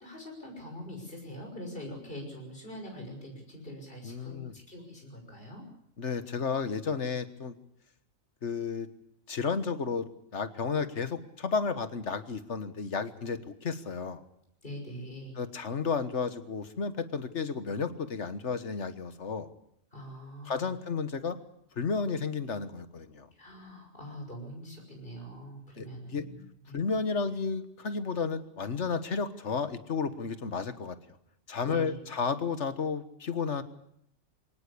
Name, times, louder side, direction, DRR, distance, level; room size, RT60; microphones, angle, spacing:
voice 1, 0.0-5.6 14.6-15.4 19.9-20.7 23.3-26.8 31.6-32.0, equal, 40° left, 1 dB, 6.3 m, -44 dB
voice 2, 4.0-4.5 6.0-7.5 8.4-8.9 9.3-10.1 10.3-14.2 15.4-19.5 20.5-21.4 21.8-23.3 25.8-25.9 26.1-26.2 26.7-31.0 31.5-33.6, left 5 dB, 60° left, 11 dB, 1.6 m, -32 dB
23.0 x 19.0 x 8.5 m, 0.73 s
omnidirectional pair, 1.4 m